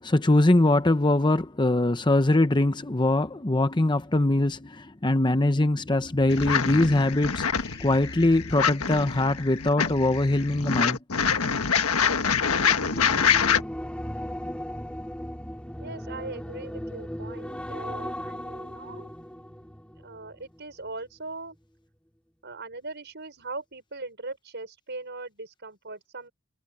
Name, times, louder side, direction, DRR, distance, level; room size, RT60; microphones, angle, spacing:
voice 1, 0.0-11.0 11.4-11.5, left 2 dB, 20° left, 0.8 m, -22 dB
sound 1, 6.3-13.6, left 6 dB, 90° left, 1.4 m, -25 dB
sound 2, 11.6-20.9 21.3-21.6, equal, 5° left, 2.7 m, -37 dB
voice 2, 15.8-19.7 20.0-21.6 22.4-26.3, right 3 dB, 55° right, 6.0 m, -40 dB
head